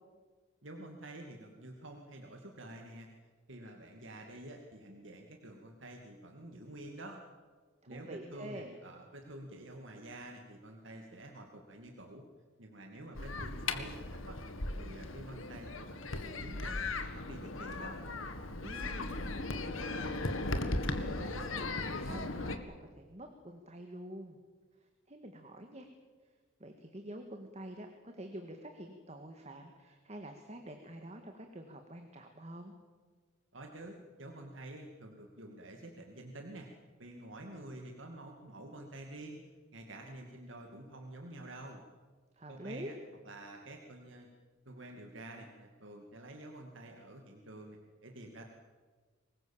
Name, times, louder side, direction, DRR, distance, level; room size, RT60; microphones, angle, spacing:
voice 1, 0.6-3.1 3.5-7.2 7.9-12.3 12.6-14.4 14.7-18.0 33.5-36.7 37.0-39.4 39.7-41.8 42.5-43.0 43.2-44.3 44.7-48.5, right 1 dB, 70° right, 2 dB, 2.4 m, -48 dB
voice 2, 7.8-8.8 18.6-20.4 20.9-24.4 25.1-25.9 26.6-32.7 42.4-42.9, right 1 dB, 35° right, 5 dB, 1.9 m, -47 dB
sound 1, 13.1-22.6, left 2 dB, 85° left, 1.9 m, -37 dB
25.0 x 21.0 x 7.5 m, 1.4 s
head